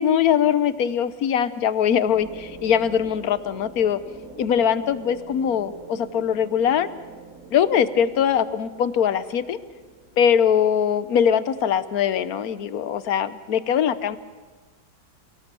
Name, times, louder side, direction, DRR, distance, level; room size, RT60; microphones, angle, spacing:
voice 1, 0.0-4.0 4.4-6.9 7.5-9.6 10.2-14.2, left 8 dB, 60° left, 15 dB, 1.2 m, -21 dB
sound 1, 2.1-10.7, right 3 dB, 5° right, 3.1 m, -44 dB
28.5 x 17.5 x 6.9 m, 1.3 s
omnidirectional pair, 2.1 m